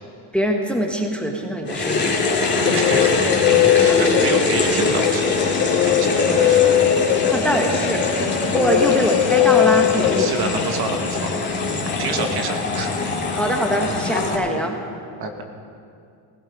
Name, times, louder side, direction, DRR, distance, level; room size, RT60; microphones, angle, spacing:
voice 1, 0.3-2.1 2.5-2.8 3.9-4.0 7.3-8.1 8.5-10.6 11.7-11.9 13.3-14.8, equal, ahead, 2 dB, 1.4 m, -23 dB
sound 1, 1.7-14.3, left 3 dB, 20° left, 2.5 m, -22 dB
sound 2, 2.3-11.0, left 13 dB, 90° left, 0.8 m, -20 dB
voice 2, 2.6-5.5 5.8-6.6 8.8-9.2 10.2-11.3 12.0-12.9 15.2-15.4, right 4 dB, 50° right, 4 dB, 1.9 m, -28 dB
16.5 x 16.0 x 5.0 m, 2.4 s
cardioid pair, 105°, 48 cm